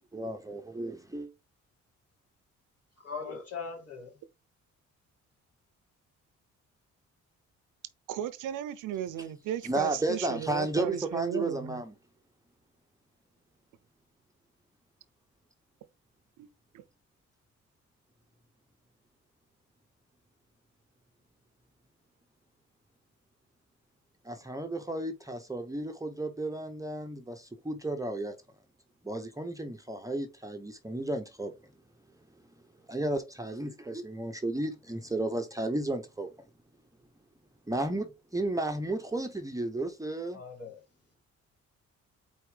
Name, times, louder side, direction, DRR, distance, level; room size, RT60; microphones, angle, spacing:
voice 1, 0.1-1.3 9.6-11.9 24.2-28.4 29.0-31.5 32.9-36.3 37.7-40.4, right 1 dB, 10° right, 0.9 m, -33 dB
voice 2, 3.0-4.1 40.3-41.2, left 5 dB, 50° left, 3.5 m, -41 dB
voice 3, 8.1-11.8 16.4-16.5 16.7-16.8, right 10 dB, 85° right, 0.8 m, -35 dB
4.6 x 4.3 x 5.0 m
cardioid pair, 90°, 30 cm